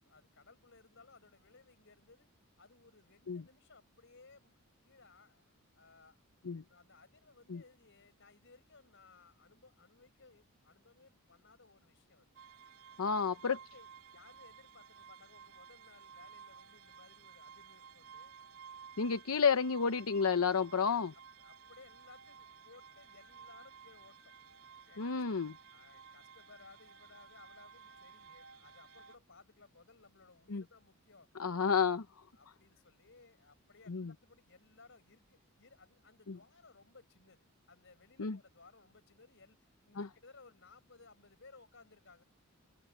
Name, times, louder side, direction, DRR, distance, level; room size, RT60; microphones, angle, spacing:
voice 1, 0.0-2.3 2.6-6.2 6.7-12.3 13.0-18.4 20.7-21.0 21.4-24.3 24.8-25.2 25.7-31.3 32.3-39.6 39.8-42.2, left 3 dB, 60° left, 5.1 m, -61 dB
sound 1, 12.4-29.2, right 7 dB, 65° right, 3.3 m, -55 dB
voice 2, 13.0-13.6 19.0-21.1 25.0-25.5 30.5-30.6 31.4-32.1 33.9-34.1 36.3-36.4 38.2-38.4 39.9-40.1, left 5 dB, 80° left, 0.8 m, -31 dB
head